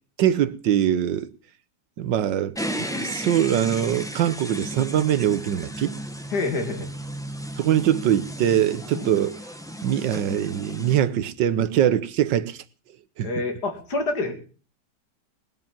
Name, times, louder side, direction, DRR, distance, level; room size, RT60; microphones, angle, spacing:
voice 1, 0.2-1.3 2.0-6.0 7.6-9.4 9.8-12.6 13.2-13.3, right 10 dB, 90° right, 1.6 m, -23 dB
sound 1, 2.6-11.0, equal, ahead, 1.1 m, -34 dB
voice 2, 6.3-6.9 8.9-9.1 13.2-14.3, left 3 dB, 65° left, 2.8 m, -27 dB
20.0 x 7.6 x 7.3 m
omnidirectional pair, 1.9 m